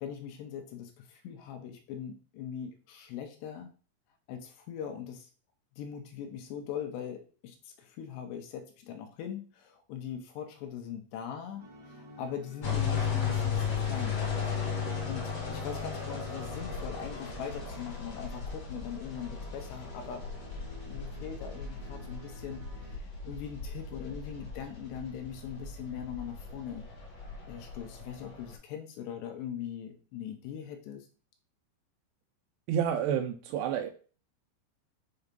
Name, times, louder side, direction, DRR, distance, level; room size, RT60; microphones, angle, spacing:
voice 1, 0.0-3.7 4.3-5.3 5.8-14.5 15.1-20.3 20.9-26.9 27.5-31.1, left 8 dB, 80° left, 5 dB, 3.0 m, -41 dB
sound 1, 11.6-23.0, equal, 25° right, 0.9 m, -53 dB
sound 2, 12.6-28.5, left 6 dB, 50° left, 2.2 m, -36 dB
voice 2, 32.7-33.9, right 9 dB, 80° right, 7 dB, 2.5 m, -29 dB
7.0 x 2.8 x 5.2 m, 0.38 s
omnidirectional pair, 5.1 m